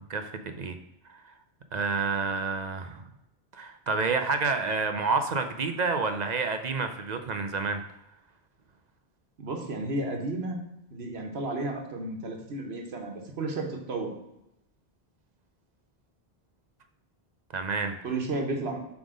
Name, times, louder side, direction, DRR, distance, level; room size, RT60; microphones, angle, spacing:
voice 1, 0.1-0.8 1.1-1.2 1.7-3.0 3.5-7.8 17.5-17.9, right 4 dB, 50° right, 7 dB, 0.6 m, -29 dB
voice 2, 9.4-10.6 10.9-14.1 18.0-18.9, right 2 dB, 90° right, 3 dB, 1.4 m, -32 dB
7.6 x 3.6 x 5.0 m, 0.87 s
omnidirectional pair, 1.0 m